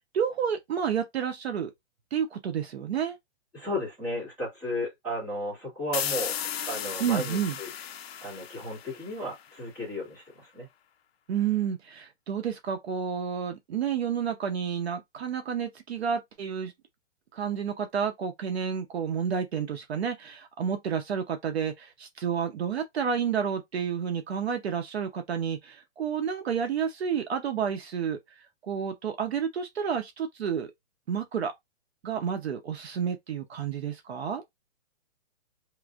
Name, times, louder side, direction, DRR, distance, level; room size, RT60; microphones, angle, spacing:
voice 1, 0.1-1.7 2.1-3.2 7.0-7.6 11.3-16.7 17.3-28.2 28.7-30.7 31.1-31.5 32.0-34.4, right 7 dB, 60° right, 0.6 m, -30 dB
voice 2, 3.5-6.4 6.7-7.7 8.2-10.7, left 1 dB, 5° right, 1.2 m, -34 dB
sound 1, 5.9-9.5, left 9 dB, 55° left, 0.4 m, -35 dB
3.1 x 2.5 x 2.3 m
hypercardioid pair, 175°, 36 cm